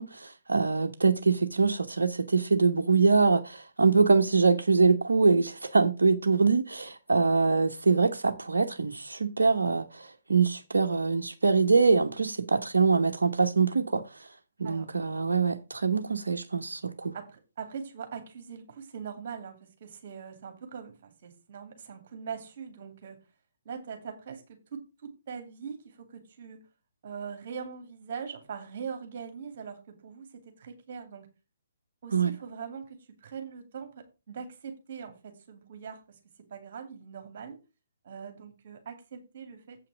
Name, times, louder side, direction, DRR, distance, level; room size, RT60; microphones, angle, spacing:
voice 1, 0.0-14.0 14.6-17.1 32.1-32.3, right 4 dB, 70° right, 1.0 m, -24 dB
voice 2, 17.1-23.2 23.6-26.7 27.0-31.3 32.0-36.2 36.5-37.6 38.0-39.9, right 6 dB, 50° right, 2.5 m, -42 dB
8.0 x 5.8 x 6.1 m
figure-of-eight pair, 130°, 0 cm